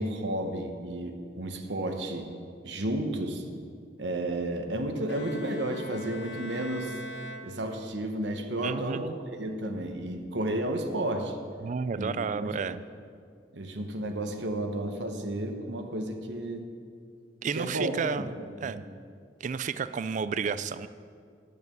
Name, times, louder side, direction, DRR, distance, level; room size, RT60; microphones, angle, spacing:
voice 1, 0.0-2.3 2.6-3.5 4.0-7.0 7.4-9.0 9.3-11.3 11.9-12.1 12.4-12.8 13.5-16.7 17.5-17.9 18.2-18.3 18.6-18.8, right 1 dB, 80° right, 5 dB, 1.0 m, -32 dB
Bowed string instrument, 5.1-8.2, left 1 dB, 85° left, 0.9 m, -43 dB
voice 2, 8.6-9.2 11.6-12.8 17.4-18.3 18.6-18.8 19.4-20.9, right 5 dB, 45° right, 14 dB, 0.3 m, -31 dB
10.5 x 6.6 x 6.8 m, 2.2 s
head